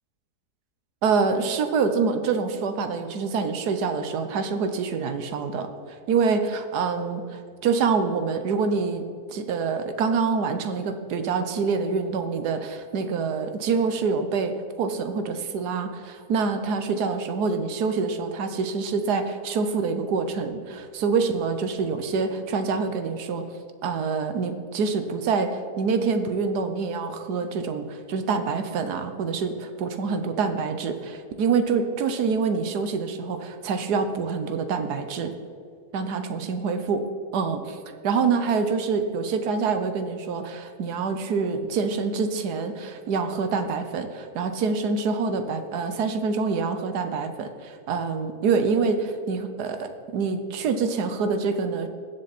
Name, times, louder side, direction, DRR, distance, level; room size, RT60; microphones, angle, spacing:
voice 1, 1.0-5.7 6.1-7.2 7.6-23.5 23.8-35.3 35.9-37.0 37.3-37.8 38.0-51.9, right 5 dB, 85° right, 8 dB, 1.4 m, -26 dB
21.0 x 7.3 x 4.1 m, 2.2 s
omnidirectional pair, 1.7 m